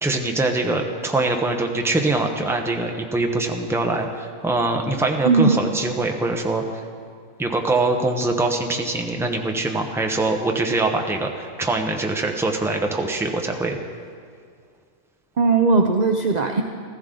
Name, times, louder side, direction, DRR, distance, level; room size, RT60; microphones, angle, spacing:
voice 1, 0.0-6.8 7.4-13.8, right 2 dB, ahead, 2 dB, 0.8 m, -23 dB
voice 2, 5.3-5.6 15.4-16.6, right 4 dB, 45° right, 5 dB, 0.6 m, -18 dB
15.0 x 14.5 x 3.8 m, 2.2 s
omnidirectional pair, 1.3 m